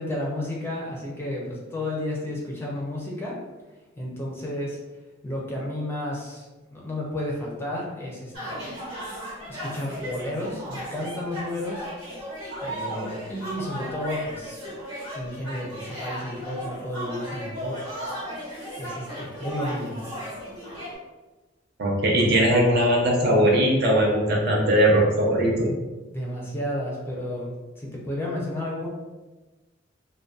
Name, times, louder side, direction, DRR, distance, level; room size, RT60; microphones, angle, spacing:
voice 1, 0.0-3.4 4.0-4.8 5.2-6.5 6.7-8.8 9.5-11.9 12.6-14.6 15.1-17.7 18.2-18.4 18.8-20.0 26.1-28.9, left 1 dB, 10° left, -3 dB, 0.4 m, -32 dB
sound 1, 8.3-21.0, equal, 80° right, 1.2 m, -36 dB
voice 2, 21.8-25.7, right 1 dB, 55° right, -2 dB, 0.6 m, -20 dB
2.5 x 2.1 x 2.3 m, 1.2 s
head